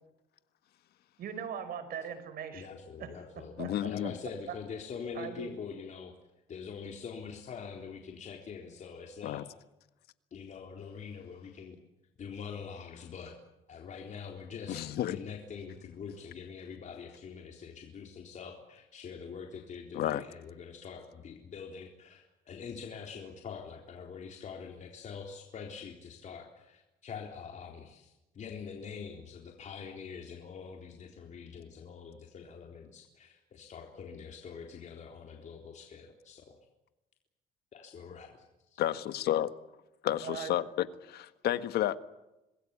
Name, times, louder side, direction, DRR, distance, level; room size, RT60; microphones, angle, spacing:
voice 1, 1.2-2.7 3.0-3.1 3.6-3.7 5.1-5.5 40.2-40.5, right 8 dB, 60° right, 5.5 m, -39 dB
voice 2, 2.5-6.1 6.5-9.4 10.3-11.8 12.2-13.3 13.7-36.6 37.7-38.8, left 6 dB, 45° left, 3.9 m, -44 dB
voice 3, 3.6-4.2 9.2-9.4 14.7-15.2 19.9-20.2 38.8-39.5 40.0-42.0, left 12 dB, 70° left, 1.6 m, -31 dB
26.0 x 21.0 x 8.6 m
cardioid pair, 110°, 17 cm